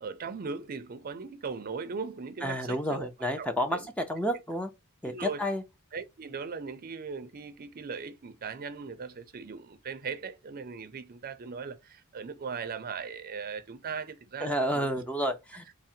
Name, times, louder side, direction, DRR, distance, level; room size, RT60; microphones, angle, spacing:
voice 1, 0.0-3.1 3.4-3.9 5.0-5.4 5.9-15.0, right 5 dB, 40° right, 0.5 m, -39 dB
voice 2, 2.4-4.7 5.0-5.6 14.4-15.6, equal, 5° left, 0.4 m, -30 dB
3.6 x 2.0 x 4.3 m
head